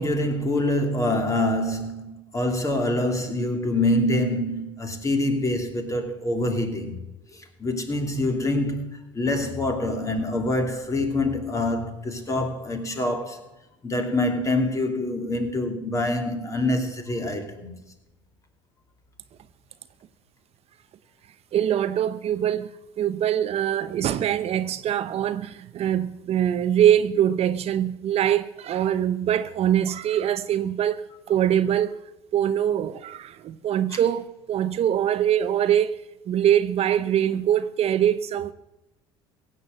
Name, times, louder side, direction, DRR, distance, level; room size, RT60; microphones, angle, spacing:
voice 1, 0.0-7.0 7.3-13.5 13.8-17.7 33.9-34.0, left 1 dB, 25° left, 2.7 m, -25 dB
voice 2, 21.5-22.7 23.0-31.9 32.3-38.5, right 10 dB, 50° right, 0.7 m, -23 dB
16.0 x 7.7 x 7.9 m
supercardioid pair, 85°, 14 cm